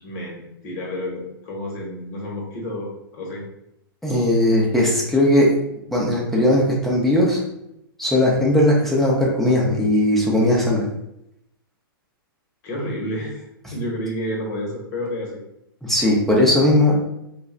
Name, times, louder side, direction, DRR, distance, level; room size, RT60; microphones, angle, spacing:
voice 1, 0.0-2.9 3.1-3.4 12.6-13.4 13.7-15.4, left 1 dB, 45° left, -2 dB, 1.0 m, -30 dB
voice 2, 4.0-5.5 5.9-7.4 8.0-10.9 15.8-17.0, left 1 dB, ahead, -4 dB, 0.6 m, -18 dB
2.3 x 2.1 x 3.7 m, 0.81 s
hypercardioid pair, 125°, 12 cm